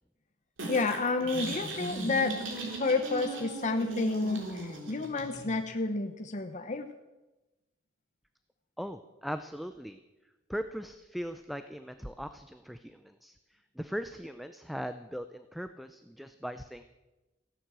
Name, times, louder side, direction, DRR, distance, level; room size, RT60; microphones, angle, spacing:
sound 1, 0.6-5.6, right 1 dB, 85° right, 3.6 m, -38 dB
voice 1, 0.7-2.5 2.8-6.9, left 3 dB, 40° left, 6 dB, 0.8 m, -30 dB
voice 2, 8.8-10.0 10.5-13.4 13.8-16.8, equal, ahead, 10 dB, 0.5 m, -39 dB
15.5 x 11.5 x 7.5 m, 1.1 s
head